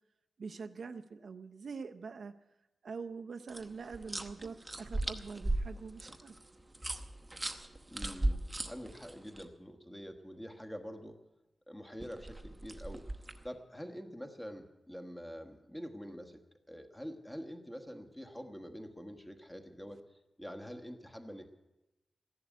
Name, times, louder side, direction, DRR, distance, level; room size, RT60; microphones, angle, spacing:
voice 1, 0.4-2.3 2.8-6.3, right 5 dB, 55° right, 8 dB, 0.6 m, -44 dB
sound 1, 3.5-9.4 12.0-13.5, right 1 dB, 15° right, 0.9 m, -37 dB
voice 2, 7.9-11.2 11.7-13.1 13.4-16.4 16.7-20.0 20.4-21.5, equal, 10° left, 5 dB, 1.2 m, -46 dB
14.5 x 11.0 x 8.1 m, 0.98 s
wide cardioid pair, 170°, 0 cm